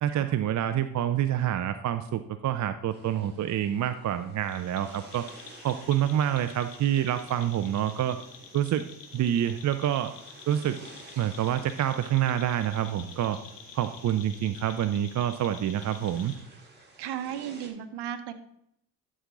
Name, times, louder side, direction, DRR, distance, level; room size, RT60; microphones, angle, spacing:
voice 1, 0.0-5.2 5.6-8.2 8.5-8.8 9.1-10.1 10.5-10.8 11.2-13.4 13.7-16.3, right 11 dB, 40° right, 10 dB, 0.6 m, -27 dB
sound 1, 2.9-17.7, right 2 dB, 20° right, 4.0 m, -53 dB
sound 2, 4.4-16.4, left 6 dB, 60° left, 1.8 m, -48 dB
voice 2, 17.0-18.3, right 10 dB, 55° right, 10 dB, 1.2 m, -35 dB
12.5 x 6.3 x 3.8 m, 0.74 s
hypercardioid pair, 65°, 47 cm